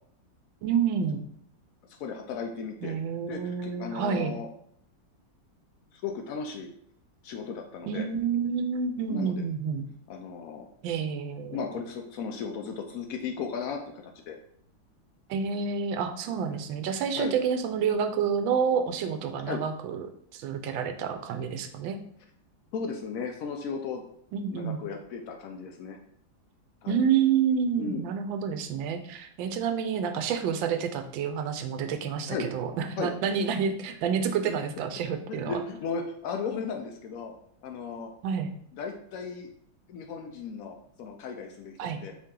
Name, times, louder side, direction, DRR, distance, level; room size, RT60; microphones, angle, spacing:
voice 1, 0.6-1.2 2.8-4.3 7.9-9.8 10.8-11.6 15.3-22.0 24.3-24.8 26.9-35.6 38.2-38.5 41.8-42.0, right 7 dB, 90° right, 7 dB, 1.3 m, -29 dB
voice 2, 2.0-3.0 3.3-4.5 5.9-6.7 7.2-8.1 9.1-9.4 10.1-10.7 11.5-14.4 16.4-16.6 17.2-17.4 19.4-19.6 22.7-24.0 24.5-26.0 26.8-27.0 27.8-28.1 32.3-32.5 33.0-33.1 35.3-37.3 37.6-38.1 38.7-39.5 39.9-42.1, left 5 dB, 90° left, 3 dB, 0.7 m, -35 dB
4.6 x 2.8 x 3.6 m, 0.68 s
omnidirectional pair, 2.0 m